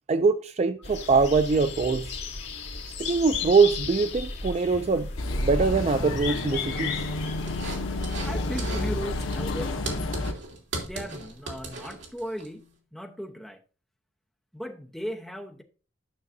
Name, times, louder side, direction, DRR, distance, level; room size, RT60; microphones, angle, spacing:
voice 1, 0.1-2.1 3.0-5.1 5.4-7.1, right 4 dB, 35° right, 0.3 m, -23 dB
sound 1, 0.8-9.7, left 4 dB, 60° left, 2.4 m, -35 dB
sound 2, 5.2-10.3, left 2 dB, 90° left, 0.8 m, -30 dB
sound 3, 7.5-8.3 8.6-8.9 9.2-12.5, right 2 dB, 70° right, 2.6 m, -37 dB
voice 2, 8.2-10.3 10.8-13.6 14.5-15.6, equal, ahead, 0.9 m, -37 dB
12.0 x 6.3 x 2.7 m
head